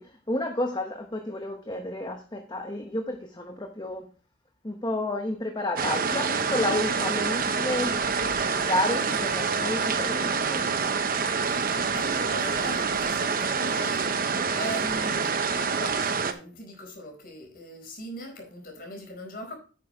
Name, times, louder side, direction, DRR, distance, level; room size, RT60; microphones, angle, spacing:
voice 1, 0.3-4.0 4.6-7.9 8.6-10.6, left 1 dB, 25° left, 1.0 m, -30 dB
sound 1, 5.8-16.3, right 5 dB, 50° right, 0.9 m, -27 dB
voice 2, 11.5-14.2 14.5-15.3 15.6-19.5, equal, 50° left, 4.6 m, -40 dB
10.0 x 9.1 x 3.2 m
head